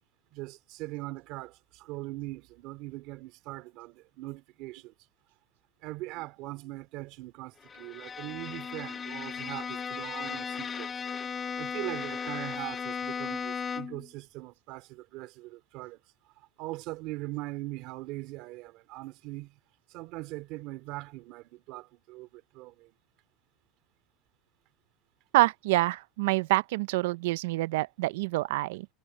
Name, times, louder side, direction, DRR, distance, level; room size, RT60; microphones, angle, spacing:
voice 1, 0.3-4.9 5.8-10.9 11.6-16.0 16.4-19.6 19.9-22.9, right 19 dB, 45° right, 2.4 m, -41 dB
Bowed string instrument, 7.6-14.1, left 6 dB, 15° left, 0.3 m, -36 dB
voice 2, 25.3-28.9, right 19 dB, 75° right, 0.5 m, -26 dB
supercardioid pair, 170°, 0 cm